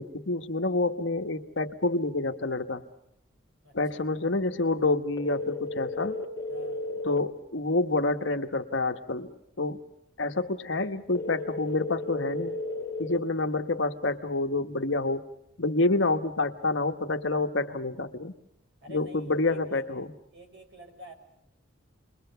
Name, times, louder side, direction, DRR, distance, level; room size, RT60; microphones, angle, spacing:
voice 1, 0.0-2.8 3.7-6.2 7.0-9.8 10.2-12.6 13.0-15.2 15.6-18.3 18.9-20.1, left 2 dB, 70° left, 7 dB, 1.4 m, -28 dB
sound 1, 5.2-7.2 11.1-13.2, left 2 dB, 15° left, 2.0 m, -34 dB
voice 2, 6.5-6.8 18.8-19.8 20.3-21.1, equal, 60° right, 3 dB, 5.6 m, -48 dB
29.5 x 22.5 x 6.9 m, 0.81 s
head